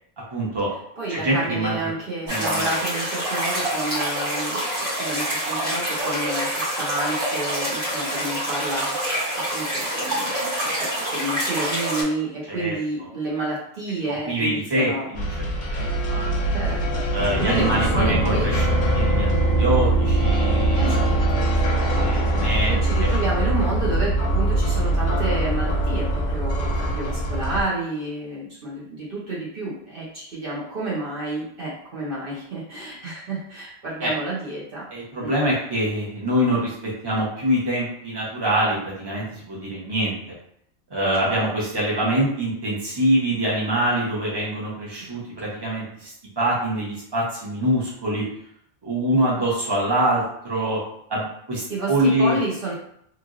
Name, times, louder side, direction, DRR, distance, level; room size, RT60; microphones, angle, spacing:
voice 1, 0.3-0.7 1.1-1.9 2.3-2.7 12.5-12.7 14.3-15.2 15.7-16.3 17.1-18.6 18.9-21.0 21.6-22.7 23.0-23.1 34.0-34.1 34.9-36.7 37.0-40.1 40.9-48.2 48.8-50.8 51.1-52.4, right 1 dB, 25° right, -6 dB, 1.0 m, -24 dB
voice 2, 1.0-10.3 10.6-15.1 16.5-17.0 17.3-18.5 20.8-21.4 22.7-34.9 35.2-35.3 41.2-41.3 45.1-45.2 49.4-49.5 51.7-52.7, right 2 dB, 60° right, -7 dB, 1.0 m, -30 dB
sound 1, 2.3-12.0, right 1 dB, 80° right, 1.5 m, -26 dB
sound 2, 15.1-27.6, right 1 dB, 55° left, 0.6 m, -22 dB
3.0 x 2.5 x 2.5 m, 0.70 s
omnidirectional pair, 1.1 m